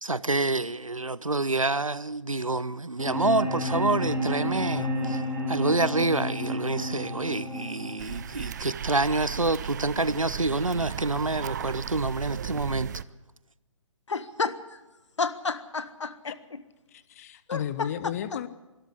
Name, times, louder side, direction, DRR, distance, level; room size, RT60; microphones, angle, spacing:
voice 1, 0.0-5.2 5.5-12.9, right 2 dB, 85° right, 0.8 m, -27 dB
sound 1, 3.0-9.0, equal, 5° right, 4.6 m, -31 dB
sound 2, 8.0-13.0, right 9 dB, 35° right, 0.6 m, -36 dB
voice 2, 14.1-14.6 15.2-16.6 17.5-17.9, left 4 dB, 60° left, 1.5 m, -31 dB
voice 3, 16.9-18.5, left 10 dB, 30° left, 0.9 m, -34 dB
24.0 x 13.0 x 8.4 m
figure-of-eight pair, 135°, 17 cm